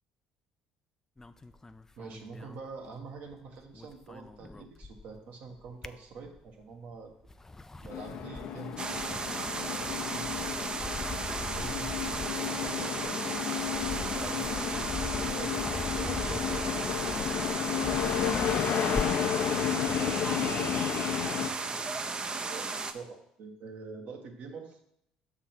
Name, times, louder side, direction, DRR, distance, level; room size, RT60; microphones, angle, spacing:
sound 1, 1.2-3.3 3.6-5.2 5.6-6.6 7.1-19.4, left 3 dB, 15° left, 0.4 m, -42 dB
voice 1, 2.0-7.1 7.8-9.3 9.6-10.7 11.2-13.4 14.0-16.8 20.0-20.8 21.2-24.8, right 4 dB, 65° right, 2 dB, 1.4 m, -46 dB
sound 2, 7.9-21.5, left 9 dB, 60° left, 0.7 m, -32 dB
sound 3, 8.8-22.9, right 3 dB, 30° right, 0.6 m, -35 dB
6.3 x 3.8 x 6.0 m, 0.73 s
supercardioid pair, 70°, 3 cm